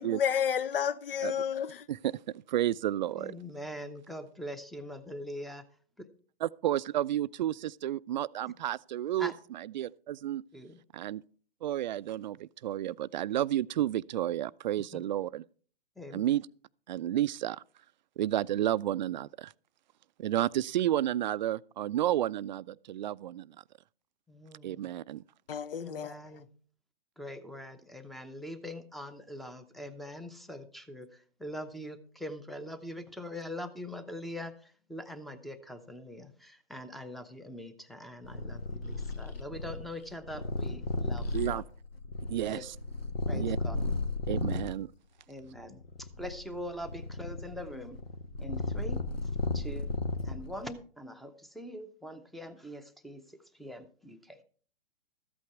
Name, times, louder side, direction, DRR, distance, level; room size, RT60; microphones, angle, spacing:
voice 1, 0.0-1.8 25.5-26.1, left 8 dB, 70° left, 0.7 m, -31 dB
voice 2, 1.9-3.3 6.4-9.3 9.8-10.4 10.9-11.2 11.6-15.4 16.1-16.4 16.9-17.6 18.2-19.5 20.2-23.6 24.6-25.2 41.3-41.6 42.3-42.6 43.3-43.6 44.3-44.9, right 12 dB, 50° right, 0.4 m, -31 dB
voice 3, 3.2-5.7 6.0-6.1 9.2-9.3 10.5-10.8 14.9-15.0 16.0-16.2 24.3-24.8 25.8-26.5 27.2-41.6 42.5-42.6 43.3-43.8 45.3-48.0 48.4-49.9 50.2-54.4, equal, ahead, 0.7 m, -43 dB
Purr, 38.2-44.8 45.4-50.7, left 2 dB, 85° left, 1.6 m, -34 dB
13.5 x 8.6 x 4.7 m
hypercardioid pair, 125°, 29 cm